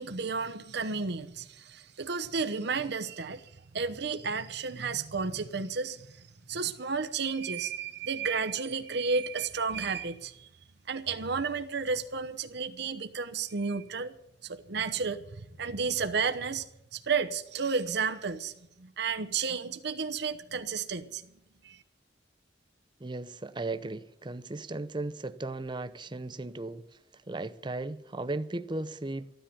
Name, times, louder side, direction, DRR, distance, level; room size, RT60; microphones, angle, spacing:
voice 1, 0.0-10.5 10.9-14.2 14.4-16.6 16.9-21.2 21.6-21.8, right 5 dB, 65° right, 0.9 m, -32 dB
voice 2, 23.0-26.9 27.1-29.3, right 2 dB, 25° right, 0.7 m, -36 dB
14.5 x 10.5 x 6.8 m
head